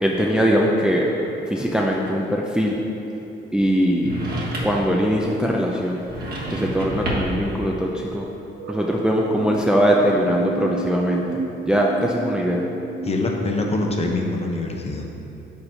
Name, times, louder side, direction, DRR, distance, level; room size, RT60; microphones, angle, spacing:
voice 1, 0.0-1.2 1.5-2.8 3.5-4.2 4.6-6.0 6.5-8.3 8.7-12.7, equal, 5° right, -2 dB, 0.5 m, -21 dB
sound 1, 4.0-4.9 6.0-7.5, right 1 dB, 50° right, 1.4 m, -29 dB
sound 2, 6.3-6.8 8.6-9.6 9.9-14.1, right 3 dB, 70° right, 0.8 m, -33 dB
voice 2, 13.0-15.1, left 2 dB, 30° left, 1 dB, 0.8 m, -24 dB
5.4 x 4.0 x 5.8 m, 3.0 s
cardioid pair, 90°, 20 cm